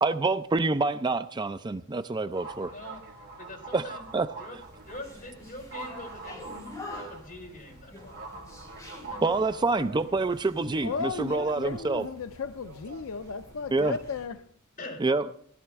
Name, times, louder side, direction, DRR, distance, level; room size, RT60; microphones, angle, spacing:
voice 1, 0.0-2.7 3.7-3.8 4.1-4.3 9.2-12.0 13.7-14.0 15.0-15.2, right 3 dB, 20° right, 0.4 m, -26 dB
sound 1, 2.3-14.3, right 3 dB, 50° right, 2.6 m, -46 dB
voice 2, 2.6-3.1 3.4-4.0 4.4-6.6 6.9-8.3 8.9-10.3 14.8-15.1, left 1 dB, 40° left, 4.2 m, -44 dB
sound 2, 4.6-14.3, left 2 dB, 15° left, 4.2 m, -48 dB
voice 3, 10.8-14.5, left 5 dB, 70° left, 0.5 m, -35 dB
17.5 x 12.0 x 3.5 m
head